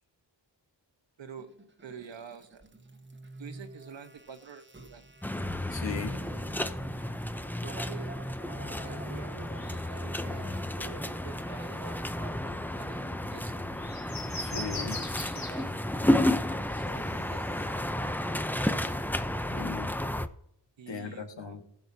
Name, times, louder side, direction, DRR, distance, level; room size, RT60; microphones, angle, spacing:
voice 1, 1.2-1.5 1.8-2.6 3.4-5.1 7.6-8.1 8.8-13.8 14.6-15.7 16.1-17.4 18.0-19.0 20.8-21.6, right 7 dB, 85° right, 1.1 m, -48 dB
sound 1, 1.4-12.6, right 3 dB, 25° right, 1.1 m, -49 dB
sound 2, 5.2-20.3, left 1 dB, 5° left, 0.5 m, -32 dB
voice 2, 5.7-6.2 14.3-15.0 19.5-20.0 20.9-21.6, left 5 dB, 80° left, 1.4 m, -38 dB
sound 3, 8.9-18.4, left 2 dB, 50° left, 2.2 m, -46 dB
18.0 x 6.5 x 2.7 m
wide cardioid pair, 85°, 44 cm